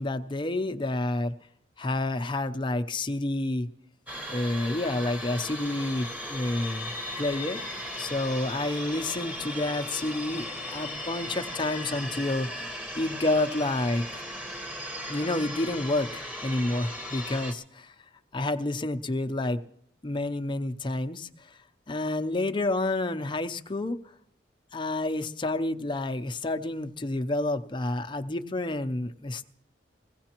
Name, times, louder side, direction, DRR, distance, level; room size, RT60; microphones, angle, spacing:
voice 1, 0.0-1.3 1.8-3.7 4.3-7.6 8.0-14.2 15.1-17.9 18.3-19.6 20.0-21.6 21.9-24.0 24.7-29.5, left 2 dB, 25° left, 8 dB, 0.6 m, -29 dB
sound 1, 4.1-17.5, left 1 dB, 10° right, 1.1 m, -37 dB
21.5 x 16.5 x 3.0 m, 0.72 s
head